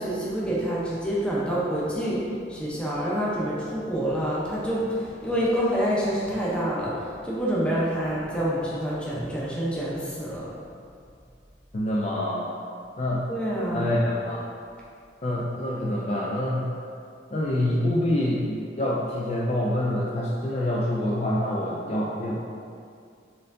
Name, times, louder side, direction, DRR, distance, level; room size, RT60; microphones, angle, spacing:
voice 1, 0.0-2.2 2.5-10.5 13.3-13.9, equal, 5° left, -7 dB, 0.7 m, -27 dB
voice 2, 11.7-12.5 13.0-13.3 13.7-14.4 15.2-16.7 17.3-22.4, left 1 dB, 35° left, -5 dB, 0.4 m, -26 dB
4.3 x 3.7 x 2.6 m, 2.4 s
head